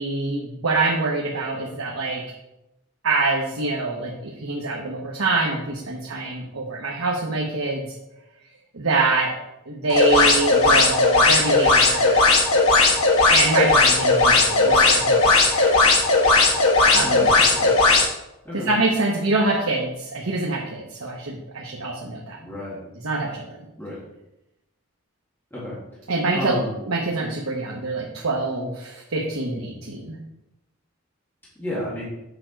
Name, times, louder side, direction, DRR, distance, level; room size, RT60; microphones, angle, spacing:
voice 1, 0.0-2.2 3.0-8.0 8.7-9.3 9.7-12.2 13.3-15.8 16.9-17.2 18.5-22.4 22.9-23.5 26.1-26.6 26.9-30.2, right 3 dB, 80° right, -1 dB, 1.0 m, -25 dB
sound 1, 9.9-18.1, left 3 dB, 85° left, 1.3 m, -17 dB
voice 2, 17.0-17.7 18.4-18.7 22.4-22.8 23.8-24.0 25.5-25.7 26.3-26.8 31.6-32.0, left 1 dB, 10° left, -9 dB, 2.1 m, -31 dB
6.8 x 5.1 x 4.6 m, 0.91 s
head